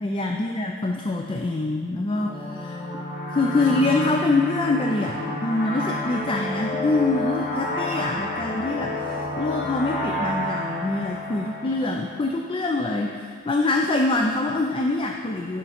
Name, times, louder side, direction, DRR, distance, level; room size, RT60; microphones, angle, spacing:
voice 1, 0.0-2.8 3.3-15.6, left 2 dB, 25° left, 2 dB, 0.4 m, -25 dB
sound 1, 2.1-12.5, left 1 dB, 45° left, 1.2 m, -30 dB
8.7 x 6.6 x 4.2 m, 2.2 s
head